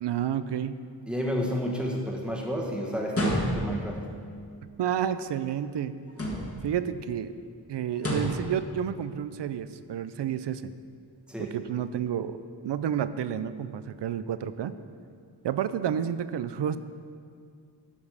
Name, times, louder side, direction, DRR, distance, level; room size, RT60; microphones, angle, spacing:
voice 1, 0.0-0.7 4.8-5.9 6.6-7.3 7.7-10.7 11.4-12.4 12.6-14.7 15.4-16.8, right 9 dB, 70° right, 13 dB, 0.5 m, -30 dB
voice 2, 1.1-4.1 11.3-11.6, equal, ahead, -1 dB, 1.4 m, -31 dB
sound 1, 3.1-3.9 6.1-6.7 7.9-8.5, equal, 30° left, 1.9 m, -29 dB
12.0 x 5.4 x 6.4 m, 2.3 s
wide cardioid pair, 120°, 44 cm